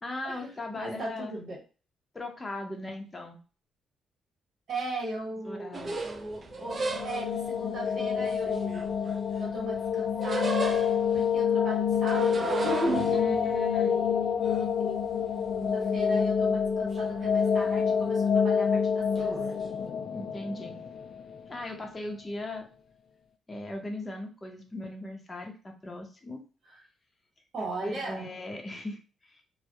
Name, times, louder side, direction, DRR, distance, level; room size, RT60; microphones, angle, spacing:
voice 1, 0.0-1.3 2.1-3.4 5.4-5.9 13.1-14.0 20.1-20.8 21.5-22.7 23.5-26.4 27.8-29.4, left 2 dB, 20° left, 2 dB, 0.6 m, -38 dB
voice 2, 0.7-1.6 4.7-8.9 9.4-10.8 11.1-12.5 13.2-15.2 15.6-19.3 26.6-26.8 27.5-28.3, right 2 dB, 60° right, -3 dB, 1.2 m, -39 dB
sound 1, 5.7-7.4 8.2-9.5 9.8-11.2 11.9-15.7 16.0-16.7 17.0-17.5 17.9-18.1 19.2-19.6, right 2 dB, 35° right, 0.4 m, -34 dB
sound 2, 6.6-21.6, left 7 dB, 55° left, 0.3 m, -28 dB
2.2 x 2.0 x 2.8 m, 0.35 s
cardioid pair, 90°, 0 cm